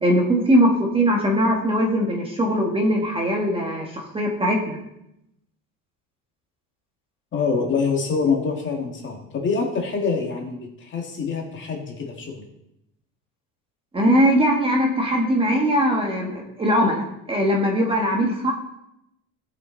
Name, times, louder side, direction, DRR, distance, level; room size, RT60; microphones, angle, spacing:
voice 1, 0.0-4.8 13.9-18.5, equal, 15° right, -1 dB, 1.5 m, -20 dB
voice 2, 7.3-12.4, left 5 dB, 30° left, 1 dB, 2.0 m, -25 dB
16.5 x 5.9 x 4.0 m, 0.82 s
cardioid pair, 155°, 36 cm